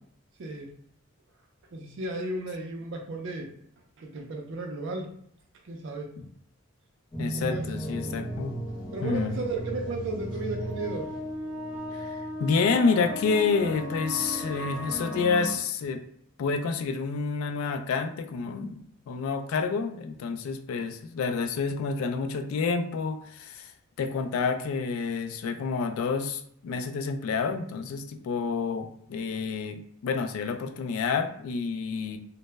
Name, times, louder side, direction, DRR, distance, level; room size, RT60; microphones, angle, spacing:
voice 1, 0.4-0.7 1.7-3.5 4.0-5.1 5.6-6.1 7.4-7.6 8.9-11.1, right 2 dB, 60° right, 2 dB, 0.4 m, -34 dB
sound 1, 7.1-15.5, equal, 20° left, 0.9 m, -35 dB
voice 2, 7.2-8.5 9.0-9.4 11.9-16.0 16.4-18.8 19.1-23.7 24.0-32.2, left 5 dB, 80° left, 8 dB, 0.3 m, -29 dB
2.0 x 2.0 x 3.3 m, 0.67 s
head